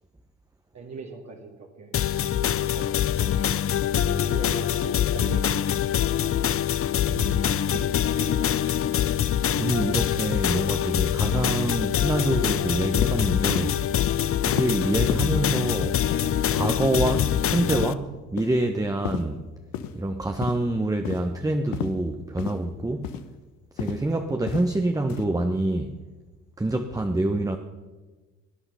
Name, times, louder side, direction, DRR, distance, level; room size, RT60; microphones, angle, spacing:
voice 1, 0.7-3.4 4.2-6.1 7.7-7.9 8.2-8.3, right 4 dB, 50° right, 0 dB, 2.1 m, -41 dB
sound 1, 1.9-17.9, left 10 dB, 40° left, 0.6 m, -24 dB
voice 2, 3.9-4.3 7.1-7.7 9.6-13.8 14.4-16.0 16.5-19.4 19.9-23.1 23.7-26.0 26.6-27.6, right 2 dB, 10° right, 5 dB, 1.1 m, -26 dB
sound 2, 12.9-13.1 13.5-13.7 14.0-14.2 14.5-14.7 15.0-15.2 15.6-15.7 16.0-16.2 16.6-16.7 17.1-17.3 17.7-17.9 18.4-18.6 19.0-19.2 19.7-19.9 20.4-20.6 21.0-21.2 21.7-21.9 22.4-22.6 23.0-23.2 23.8-24.0 24.5-24.7 25.1-25.2, left 10 dB, 70° left, 1.0 m, -31 dB
17.5 x 9.9 x 5.6 m, 1.3 s
hypercardioid pair, 55°, 36 cm